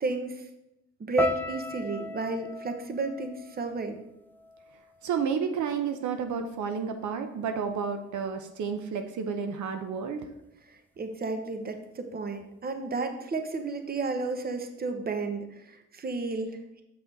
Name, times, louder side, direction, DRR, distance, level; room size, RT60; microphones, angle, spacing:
voice 1, 0.0-0.4 1.1-4.0 10.7-16.8, right 3 dB, 30° right, 7 dB, 1.0 m, -32 dB
sound 1, 1.2-5.4 5.6-6.4 7.0-7.2, left 2 dB, 5° left, 0.6 m, -37 dB
voice 2, 5.0-10.3, right 6 dB, 70° right, 6 dB, 0.8 m, -31 dB
6.9 x 5.9 x 4.0 m, 0.86 s
cardioid pair, 90°, 30 cm